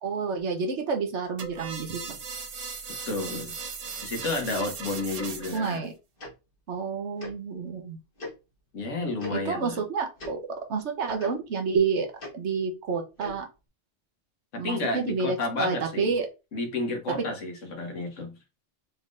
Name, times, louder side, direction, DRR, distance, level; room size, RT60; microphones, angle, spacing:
voice 1, 0.0-2.2 5.5-5.9 6.7-8.0 9.3-12.1 12.3-13.5 14.5-16.3 17.1-17.2, right 5 dB, 70° right, 1.2 m, -29 dB
sound 1, 1.4-5.8, right 5 dB, 45° right, 0.5 m, -38 dB
voice 2, 3.1-3.5 4.0-5.8 8.7-9.8 14.5-16.1 16.5-18.3, left 2 dB, 80° left, 1.4 m, -31 dB
Tick-tock, 6.2-6.3 7.2-7.3 8.2-8.3 9.2-9.3 10.2-10.3 11.2-11.3 12.2-12.3 13.2-13.4, left 2 dB, 45° left, 1.5 m, -38 dB
4.2 x 3.6 x 2.5 m
omnidirectional pair, 1.2 m